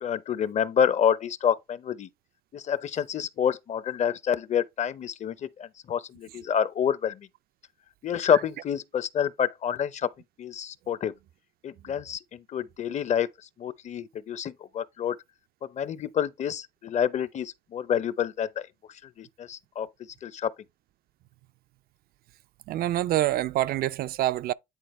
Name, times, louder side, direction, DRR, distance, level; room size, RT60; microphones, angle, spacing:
voice 1, 0.0-2.1 2.5-7.3 8.0-10.1 10.4-11.1 11.6-13.3 13.6-15.2 15.6-18.7 19.0-19.9 20.2-20.5, left 8 dB, 45° left, 0.7 m, -28 dB
voice 2, 22.7-24.5, right 14 dB, 65° right, 0.5 m, -26 dB
9.8 x 4.1 x 3.1 m
cardioid pair, 110°, 17 cm